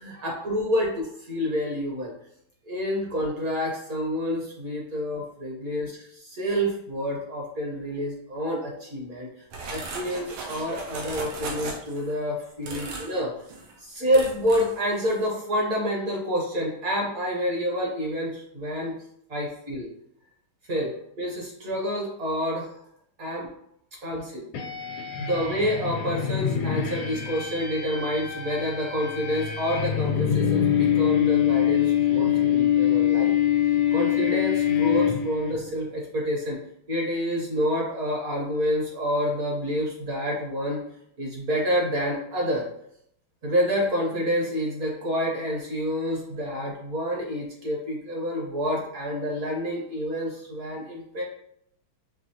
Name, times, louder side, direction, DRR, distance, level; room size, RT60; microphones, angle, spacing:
voice 1, 0.0-2.1 2.6-9.4 9.7-13.3 13.8-19.0 19.3-19.9 20.7-22.7 23.2-23.5 24.0-24.4 25.2-33.3 33.9-36.6 36.9-40.8 41.2-42.7 43.4-51.2, equal, 50° right, -2 dB, 1.2 m, -28 dB
sound 1, 9.5-12.1 12.6-13.2 13.5-13.7 14.1-14.8 15.0-15.2, right 3 dB, 90° right, 1.8 m, -37 dB
sound 2, 24.5-35.6, left 10 dB, 80° left, 1.5 m, -24 dB
5.2 x 3.0 x 2.8 m, 0.73 s
omnidirectional pair, 2.3 m